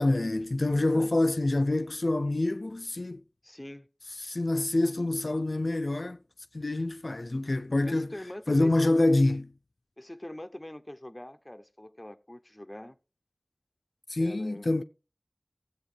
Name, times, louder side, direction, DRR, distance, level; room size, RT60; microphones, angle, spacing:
voice 1, 0.0-3.2 4.2-6.2 6.5-8.1 8.5-9.5 14.1-14.8, left 2 dB, 65° left, 0.4 m, -26 dB
voice 2, 0.7-1.1 3.4-3.9 7.8-9.0 10.0-13.0 14.2-14.7, left 1 dB, 20° left, 0.7 m, -43 dB
16.0 x 8.0 x 3.3 m
wide cardioid pair, 50°, 0 cm